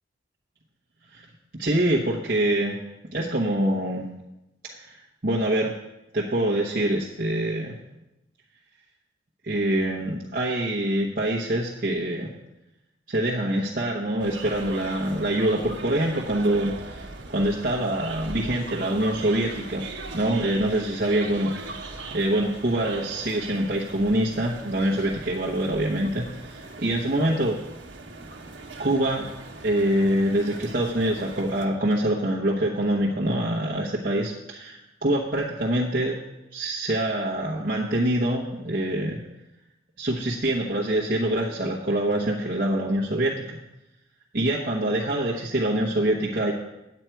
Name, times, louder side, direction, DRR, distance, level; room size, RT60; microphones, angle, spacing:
voice 1, 1.5-2.8 3.1-4.1 4.7-5.7 6.1-7.7 9.4-12.3 13.1-19.8 20.1-27.6 28.8-29.3 29.6-36.2 36.5-39.2 40.0-43.6 44.3-46.5, right 1 dB, 50° right, -4 dB, 1.1 m, -25 dB
sound 1, 14.2-31.7, right 3 dB, 80° right, 1.3 m, -40 dB
9.6 x 9.0 x 4.6 m, 0.93 s
head